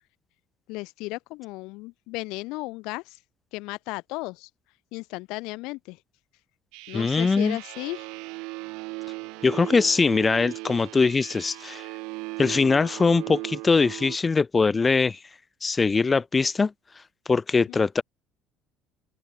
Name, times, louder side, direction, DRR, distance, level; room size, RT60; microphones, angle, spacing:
voice 1, 0.7-3.2 3.5-4.5 4.9-6.0 6.9-8.1 17.5-17.8, left 23 dB, 75° left, 3.6 m, -35 dB
sound 1, 6.7-14.2, right 26 dB, 80° right, 5.2 m, -38 dB
voice 2, 6.9-7.6 9.4-11.9 12.4-15.2 15.6-16.7 17.3-18.0, left 4 dB, 20° left, 1.3 m, -22 dB
open air
cardioid pair, 110°, 0 cm